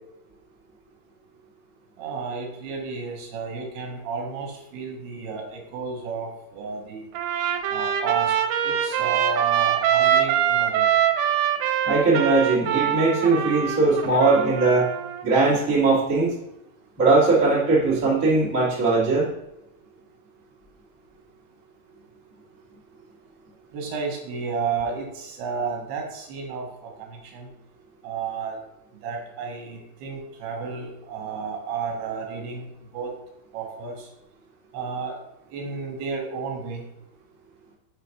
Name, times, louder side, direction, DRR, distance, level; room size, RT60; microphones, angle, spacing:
voice 1, 2.0-7.1 7.7-8.3 8.6-10.9 23.7-27.5 28.0-28.6 29.0-32.7 32.9-33.1 33.5-34.1 34.7-35.2 35.5-36.8, right 5 dB, 70° right, 1 dB, 3.0 m, -32 dB
Trumpet, 7.1-15.3, right 9 dB, 90° right, 2.9 m, -23 dB
voice 2, 11.8-14.9 15.2-16.3 17.0-19.3, right 3 dB, 40° right, -7 dB, 1.1 m, -20 dB
6.9 x 4.1 x 4.7 m, 0.86 s
omnidirectional pair, 5.2 m